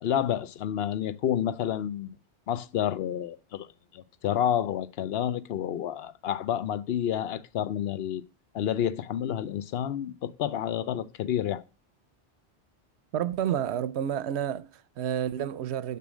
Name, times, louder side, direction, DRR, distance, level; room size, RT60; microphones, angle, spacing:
voice 1, 0.0-2.1 2.5-3.7 3.9-8.2 8.5-11.6, left 10 dB, 65° left, 0.8 m, -29 dB
voice 2, 13.1-16.0, right 10 dB, 70° right, 0.8 m, -30 dB
6.9 x 6.0 x 6.2 m
omnidirectional pair, 1.2 m